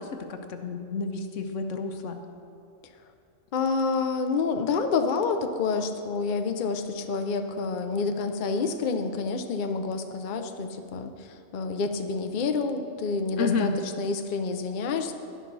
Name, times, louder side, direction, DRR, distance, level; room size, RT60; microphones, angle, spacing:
voice 1, 0.0-2.2 13.4-13.7, left 4 dB, 75° left, 6 dB, 1.1 m, -30 dB
voice 2, 3.5-13.7 14.0-15.1, left 4 dB, 50° left, 6 dB, 0.7 m, -28 dB
11.0 x 11.0 x 4.0 m, 2.5 s
omnidirectional pair, 1.3 m